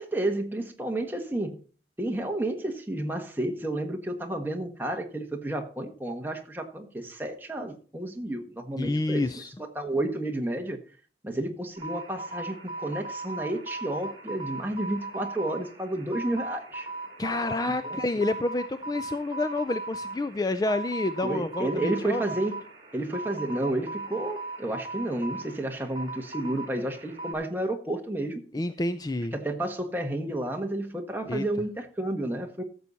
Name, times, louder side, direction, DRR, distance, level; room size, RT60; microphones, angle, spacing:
voice 1, 0.0-1.6 2.0-9.2 9.6-10.8 11.2-16.9 17.8-18.0 21.2-22.6 22.9-28.4 29.3-32.6, right 1 dB, 10° right, 1.4 m, -31 dB
voice 2, 8.8-9.5 17.2-22.2 28.5-29.3 31.3-31.4, left 2 dB, 20° left, 0.4 m, -29 dB
sound 1, 11.8-27.3, right 2 dB, 30° right, 2.6 m, -38 dB
14.5 x 7.0 x 4.1 m
head